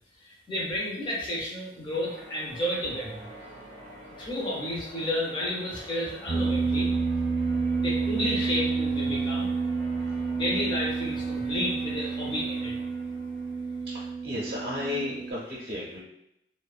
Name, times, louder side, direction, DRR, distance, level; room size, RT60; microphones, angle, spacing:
voice 1, 0.2-3.3 4.2-6.9 7.8-9.5 10.3-12.8, left 1 dB, 25° left, -5 dB, 0.5 m, -31 dB
Church bell, 1.9-14.2, equal, 80° left, 1.0 m, -47 dB
sound 1, 6.3-15.3, right 4 dB, 55° left, 1.1 m, -29 dB
voice 2, 13.9-16.0, left 1 dB, 55° right, -7 dB, 0.6 m, -34 dB
2.9 x 2.1 x 2.4 m, 0.81 s
head